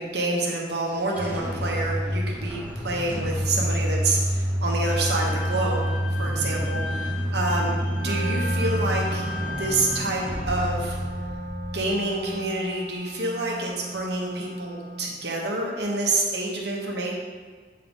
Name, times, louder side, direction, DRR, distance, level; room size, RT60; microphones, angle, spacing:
voice 1, 0.0-6.8 7.3-9.2 9.6-10.9 11.7-17.1, right 2 dB, 60° right, -2 dB, 1.1 m, -27 dB
sound 1, 0.9-12.5, equal, 10° right, 0.8 m, -28 dB
Bowed string instrument, 4.9-10.0, left 4 dB, 85° left, 0.7 m, -38 dB
Wind instrument woodwind instrument, 8.0-15.2, right 1 dB, 40° right, 0.3 m, -36 dB
8.7 x 3.8 x 3.6 m, 1.5 s
head